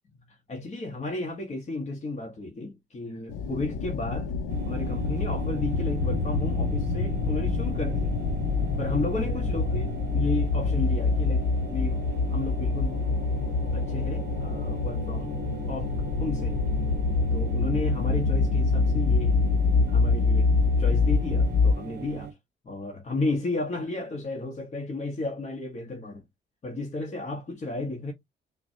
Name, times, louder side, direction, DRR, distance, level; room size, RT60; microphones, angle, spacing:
voice 1, 0.1-4.3 4.7-8.1 8.8-12.0 12.3-13.0 13.7-15.3 15.7-16.6 17.3-19.4 19.9-20.5 20.8-22.4 22.6-26.2 26.6-28.1, left 2 dB, 35° left, 1.2 m, -33 dB
sound 1, 3.3-21.7, left 4 dB, 80° left, 0.7 m, -26 dB
sound 2, 4.5-22.3, right 9 dB, 60° right, 0.7 m, -40 dB
5.8 x 2.3 x 2.7 m
cardioid pair, 90°, 20 cm